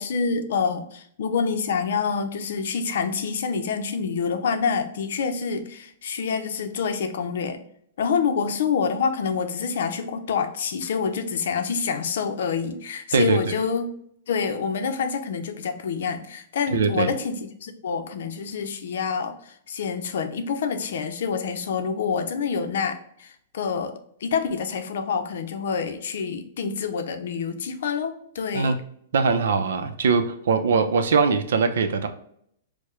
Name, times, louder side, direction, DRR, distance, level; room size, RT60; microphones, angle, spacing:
voice 1, 0.0-7.6 8.0-13.9 14.3-23.9 24.2-28.8, left 6 dB, 70° left, 7 dB, 0.6 m, -27 dB
voice 2, 13.1-13.6 16.7-17.1 28.5-28.8 29.1-32.1, right 5 dB, 80° right, 8 dB, 0.6 m, -21 dB
4.6 x 2.2 x 3.1 m, 0.68 s
hypercardioid pair, 150°, 0 cm